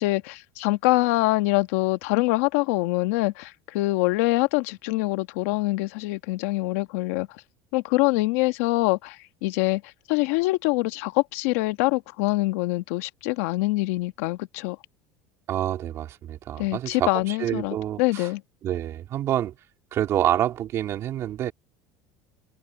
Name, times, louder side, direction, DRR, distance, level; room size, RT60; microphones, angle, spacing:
voice 1, 0.0-7.3 7.7-9.8 10.1-14.8 16.6-18.4, left 20 dB, 75° left, 1.4 m, -24 dB
voice 2, 15.5-18.3 18.6-19.5 19.9-21.5, right 11 dB, 40° right, 3.1 m, -27 dB
cardioid pair, 160°, 8 cm